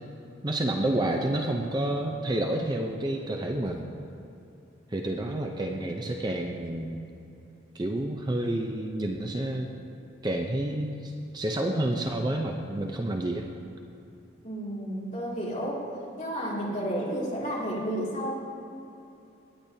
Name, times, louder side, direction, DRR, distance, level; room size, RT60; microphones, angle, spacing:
voice 1, 0.4-3.9 4.9-7.0 7.7-9.7 10.2-13.5, right 1 dB, 20° right, 2 dB, 0.5 m, -29 dB
voice 2, 14.4-15.9 16.2-18.3, equal, 35° left, -6 dB, 2.4 m, -31 dB
17.5 x 10.0 x 2.7 m, 2.8 s
head